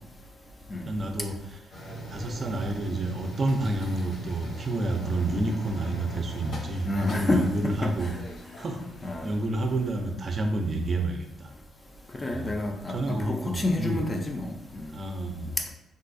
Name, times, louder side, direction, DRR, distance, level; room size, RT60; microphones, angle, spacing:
voice 1, 0.8-1.6 2.1-8.1 8.6-8.8 9.2-11.5 12.3-12.5 12.9-14.0 14.9-15.5, right 2 dB, 40° right, 4 dB, 0.5 m, -29 dB
sound 1, 1.7-9.3, right 2 dB, 60° left, 0.9 m, -40 dB
voice 2, 6.8-7.5 7.8-7.9 9.0-9.3 12.2-14.9, left 2 dB, 25° left, 4 dB, 0.4 m, -28 dB
3.7 x 2.3 x 2.6 m, 0.87 s
cardioid pair, 90°, 0 cm